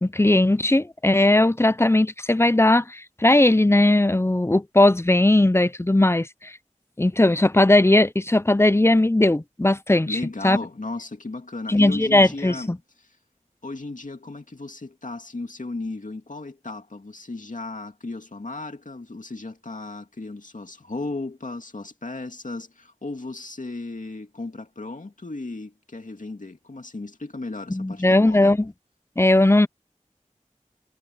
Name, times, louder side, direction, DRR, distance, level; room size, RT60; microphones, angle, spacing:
voice 1, 0.0-6.5 7.0-10.2 10.4-10.6 11.7-12.8 27.7-28.7 29.2-29.7, left 1 dB, 20° left, 0.6 m, -18 dB
voice 2, 10.1-12.7 13.6-28.5, left 2 dB, 80° left, 2.4 m, -35 dB
wide cardioid pair, 45°, 13 cm